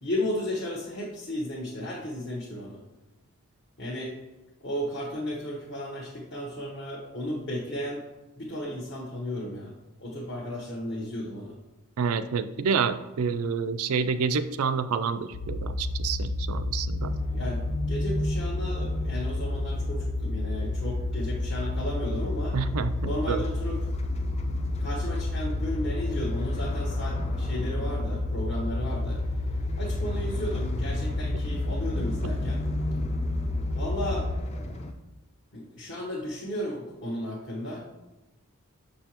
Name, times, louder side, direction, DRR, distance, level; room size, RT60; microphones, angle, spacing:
voice 1, 0.0-2.8 3.8-4.2 4.6-8.0 8.4-9.7 10.0-11.5 17.3-17.6 17.9-22.6 23.0-23.8 24.8-29.2 29.8-32.6 33.7-34.3 35.5-37.9, left 1 dB, 55° left, -5 dB, 1.0 m, -34 dB
voice 2, 12.0-17.1 22.5-23.4 32.2-32.3, right 5 dB, 85° right, 12 dB, 0.4 m, -28 dB
sound 1, 15.3-34.4, left 2 dB, 80° left, 0.6 m, -30 dB
sound 2, 17.0-34.9, left 1 dB, 30° left, 0.5 m, -38 dB
6.5 x 5.5 x 2.9 m, 1.0 s
head